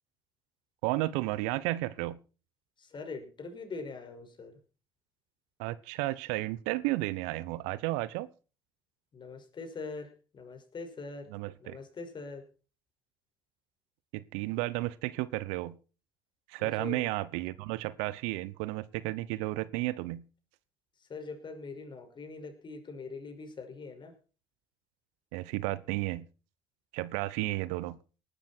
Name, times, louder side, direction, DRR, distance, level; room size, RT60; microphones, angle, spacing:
voice 1, 0.8-2.2 5.6-8.3 11.3-11.8 14.1-15.8 16.5-20.2 25.3-26.2 26.9-28.0, right 19 dB, 70° right, 19 dB, 0.9 m, -33 dB
voice 2, 2.8-4.6 9.1-11.3 11.6-12.5 16.6-17.1 21.0-24.1, left 4 dB, 40° left, 6 dB, 5.8 m, -43 dB
19.0 x 12.0 x 4.5 m, 0.36 s
hypercardioid pair, 50°, 12 cm